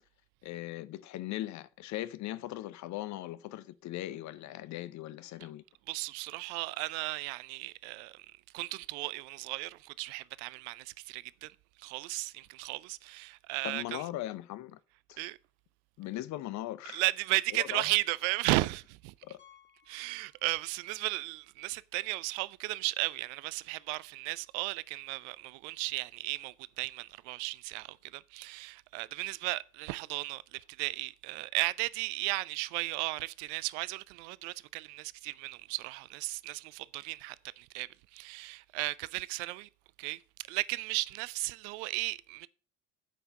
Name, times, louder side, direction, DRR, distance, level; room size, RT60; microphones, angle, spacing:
voice 1, 0.4-5.6 13.6-14.8 15.1-15.2 16.0-17.0 17.5-17.8 19.2-19.4, left 15 dB, 45° left, 0.7 m, -39 dB
voice 2, 5.9-14.0 15.2-15.4 16.9-19.1 19.9-39.7 40.0-40.2 40.5-42.5, right 21 dB, 60° right, 0.5 m, -35 dB
Piano, 19.4-21.0 21.3-21.4 22.0-22.1 22.3-22.4 24.5-24.6, left 10 dB, 30° left, 2.2 m, -63 dB
8.5 x 5.6 x 6.2 m
figure-of-eight pair, 60°, 40 cm